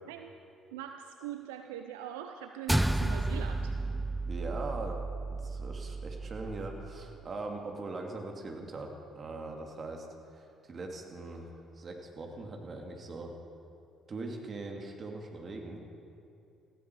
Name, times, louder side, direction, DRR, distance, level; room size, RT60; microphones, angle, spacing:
voice 1, 0.7-3.7, right 10 dB, 80° right, 7 dB, 0.6 m, -42 dB
sound 1, 2.7-7.3, right 2 dB, 5° right, 0.6 m, -33 dB
voice 2, 4.3-5.0 5.3-13.3 14.1-15.8, right 2 dB, 45° right, 2 dB, 2.8 m, -41 dB
19.0 x 15.5 x 4.9 m, 2.7 s
hypercardioid pair, 50°, 0 cm